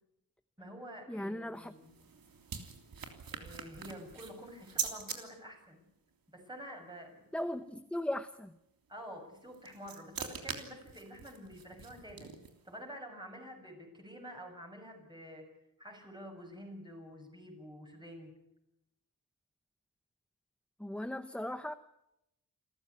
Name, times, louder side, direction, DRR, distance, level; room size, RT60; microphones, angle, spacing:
voice 1, 0.6-2.0 3.3-5.9 6.3-7.4 8.9-12.3 12.6-15.5 15.8-18.4, equal, 15° right, 2 dB, 6.9 m, -48 dB
voice 2, 1.1-1.7 7.3-8.5 20.8-21.7, left 1 dB, 5° left, 10 dB, 0.8 m, -37 dB
sound 1, 1.5-5.2 9.3-12.7, right 6 dB, 90° right, 3.2 m, -43 dB
28.5 x 14.5 x 9.7 m, 0.87 s
wide cardioid pair, 125°, 34 cm